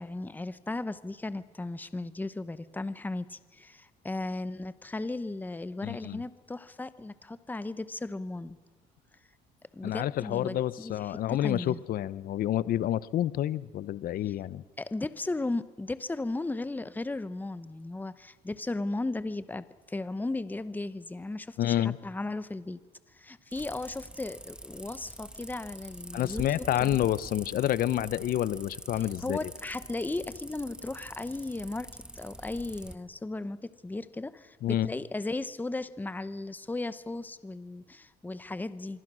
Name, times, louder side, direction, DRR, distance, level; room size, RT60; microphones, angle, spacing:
voice 1, 0.0-8.6 9.7-11.8 14.3-14.4 14.8-22.8 23.1-26.9 29.2-31.9 32.1-39.0, left 2 dB, 10° left, 15 dB, 0.9 m, -36 dB
voice 2, 5.8-6.2 9.8-14.6 21.6-22.0 26.1-29.4 34.6-34.9, left 12 dB, 60° left, 18 dB, 0.7 m, -29 dB
sound 1, 23.5-32.9, right 1 dB, 5° right, 1.5 m, -45 dB
26.0 x 22.5 x 6.2 m, 1.4 s
cardioid pair, 110°, 17 cm